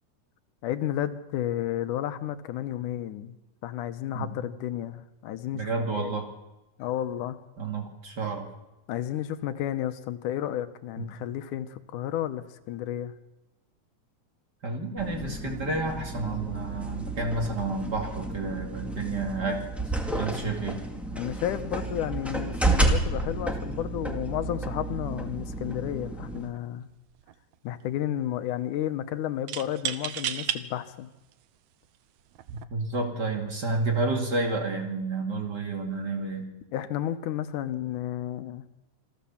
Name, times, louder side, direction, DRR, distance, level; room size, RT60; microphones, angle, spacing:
voice 1, 0.6-3.4 3.6-5.7 5.9-6.2 6.8-7.4 8.9-13.1 21.2-26.9 27.6-31.1 36.7-38.7, left 11 dB, 90° left, 10 dB, 2.5 m, -32 dB
voice 2, 5.5-6.3 7.6-8.5 11.0-11.1 14.6-19.7 20.1-20.8 32.5-36.5, right 3 dB, 35° right, 2 dB, 2.5 m, -30 dB
sound 1, 15.0-26.5, right 2 dB, ahead, 1.5 m, -31 dB
sound 2, 26.4-26.6 26.9-27.6 29.5-30.6 31.3-31.4 32.3-32.6, right 11 dB, 75° right, 2.1 m, -32 dB
27.0 x 13.5 x 7.2 m, 1.0 s
omnidirectional pair, 3.5 m